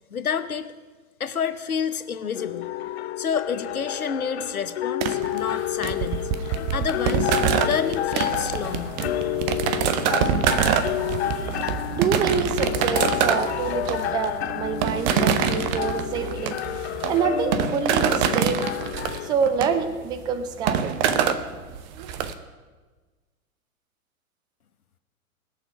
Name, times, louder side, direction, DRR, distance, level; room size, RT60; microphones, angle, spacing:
voice 1, 0.1-0.7 1.2-2.8 3.2-6.3 6.7-7.3 7.6-9.0, left 7 dB, 80° left, 11 dB, 0.9 m, -29 dB
sound 1, 2.3-19.3, left 13 dB, 50° left, 0.7 m, -30 dB
sound 2, 5.0-22.3, right 8 dB, 30° right, 0.8 m, -25 dB
voice 2, 11.5-16.6 17.1-18.6 19.2-21.2, right 6 dB, 10° right, 10 dB, 0.4 m, -27 dB
20.5 x 7.0 x 5.6 m, 1.3 s
figure-of-eight pair, 105°, 43 cm